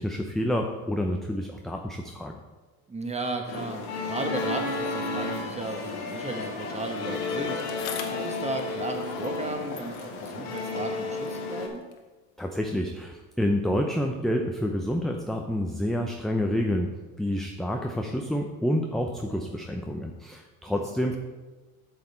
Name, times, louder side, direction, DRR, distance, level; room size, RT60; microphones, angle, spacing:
voice 1, 0.0-2.3 12.4-16.9 17.2-21.2, equal, ahead, 2 dB, 0.6 m, -28 dB
voice 2, 2.9-11.8 20.7-20.8, right 2 dB, 15° right, 4 dB, 1.4 m, -35 dB
sound 1, 3.5-11.7, left 3 dB, 85° left, 1.7 m, -32 dB
Bicycle, 7.1-9.5 9.7-12.1 12.9-13.0, left 8 dB, 65° left, 1.3 m, -44 dB
7.9 x 6.5 x 4.4 m, 1.2 s
supercardioid pair, 95°, 41 cm